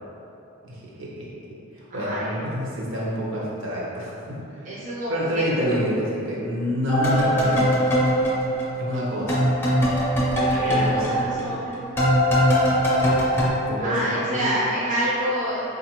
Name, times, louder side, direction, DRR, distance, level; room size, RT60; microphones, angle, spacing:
voice 1, 0.7-1.3 1.9-4.8 5.1-7.8 8.8-9.5 10.7-11.5 13.7-14.6, equal, 65° right, -5 dB, 0.7 m, -28 dB
voice 2, 1.9-2.3 4.6-5.7 10.4-12.0 13.8-15.6, equal, 40° right, -9 dB, 0.5 m, -28 dB
sound 1, 6.9-9.0 9.3-13.5, equal, 10° left, 0.5 m, -21 dB
3.9 x 2.4 x 2.9 m, 2.8 s
head